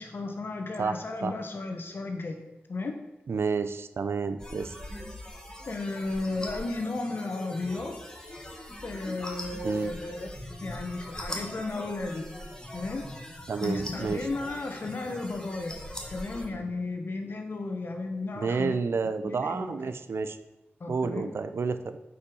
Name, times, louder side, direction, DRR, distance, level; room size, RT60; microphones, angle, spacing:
voice 1, 0.0-2.4 2.7-3.0 5.6-8.0 8.8-10.3 10.6-12.3 12.7-13.0 13.6-15.7 16.1-18.8 19.2-19.9 20.8-21.3, left 3 dB, 60° left, 4 dB, 1.4 m, -34 dB
voice 2, 0.8-1.3 3.3-4.8 9.6-9.9 13.5-14.2 16.5-16.6 18.3-20.4 20.9-21.8, right 5 dB, 75° right, 10 dB, 0.6 m, -30 dB
sound 1, 4.4-16.5, left 1 dB, 15° left, 1.6 m, -41 dB
8.5 x 5.5 x 6.2 m, 0.97 s
wide cardioid pair, 105°, 4 cm